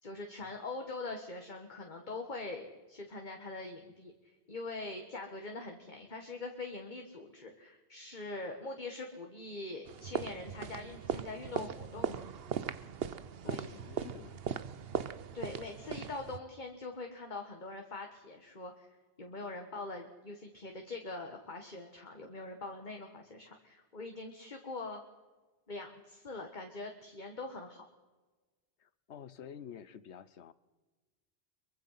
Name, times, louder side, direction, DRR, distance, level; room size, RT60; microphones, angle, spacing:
voice 1, 0.0-4.1 4.5-12.2 13.4-13.7 15.3-18.9 19.2-25.0 25.7-27.8, left 3 dB, 45° left, 3 dB, 1.8 m, -43 dB
sound 1, 9.9-16.4, right 7 dB, 65° right, 1.0 m, -39 dB
voice 2, 13.4-14.6 28.8-30.5, left 8 dB, 90° left, 16 dB, 1.2 m, -50 dB
23.5 x 23.0 x 5.7 m, 1.3 s
omnidirectional pair, 1.1 m